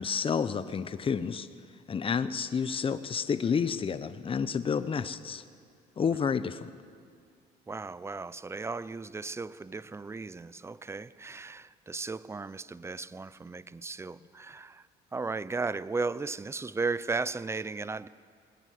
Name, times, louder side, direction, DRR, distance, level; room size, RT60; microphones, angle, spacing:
voice 1, 0.0-1.5 1.9-5.4 6.0-6.7, left 6 dB, 30° left, 0.9 m, -30 dB
voice 2, 7.7-14.9 15.1-18.1, right 4 dB, 15° right, 0.6 m, -35 dB
20.0 x 19.5 x 9.4 m
cardioid pair, 110°, 17 cm